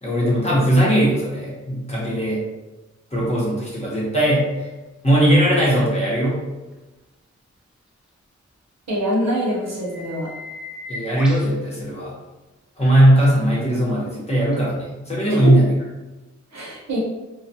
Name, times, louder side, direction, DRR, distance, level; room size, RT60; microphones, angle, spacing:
voice 1, 0.0-2.4 3.1-4.7 5.0-6.4 10.9-12.1 12.8-15.7, right 1 dB, 20° left, -6 dB, 0.9 m, -19 dB
sound 1, 5.1-5.2 9.1-9.2 9.6-11.5 12.8-12.9 14.5-14.6, left 2 dB, 5° right, 0.5 m, -37 dB
voice 2, 8.9-10.3 15.3-15.5 16.5-17.0, equal, 65° right, -4 dB, 0.8 m, -24 dB
2.2 x 2.2 x 2.7 m, 1.1 s
wide cardioid pair, 85°, 29 cm